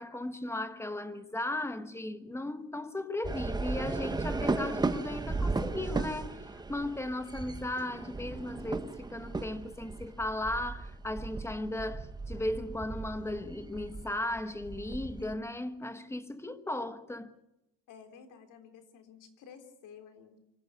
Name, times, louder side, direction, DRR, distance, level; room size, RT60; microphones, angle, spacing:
voice 1, 0.0-6.4 6.7-17.3, left 1 dB, 10° left, 1.2 m, -36 dB
sound 1, 3.2-15.3, right 3 dB, 10° right, 1.0 m, -36 dB
voice 2, 17.9-20.4, left 7 dB, 65° left, 3.7 m, -52 dB
25.0 x 15.0 x 8.4 m
cardioid pair, 160°, 33 cm